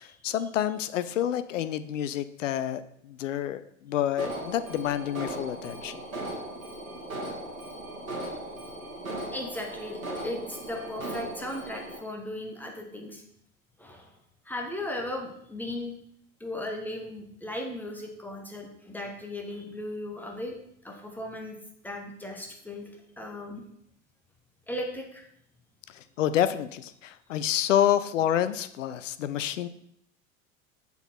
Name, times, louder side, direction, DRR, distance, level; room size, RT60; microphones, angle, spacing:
voice 1, 0.0-6.0 25.9-29.7, left 11 dB, 65° left, 13 dB, 0.5 m, -28 dB
Alarm, 4.2-12.0, right 1 dB, 75° right, 1.7 m, -38 dB
voice 2, 9.3-13.2 13.8-14.1 14.4-16.0 16.4-20.5 20.8-21.6 21.8-23.6 24.7-25.2, left 1 dB, 5° left, 1 dB, 1.0 m, -37 dB
6.8 x 4.1 x 4.4 m, 0.73 s
figure-of-eight pair, 85°, 41 cm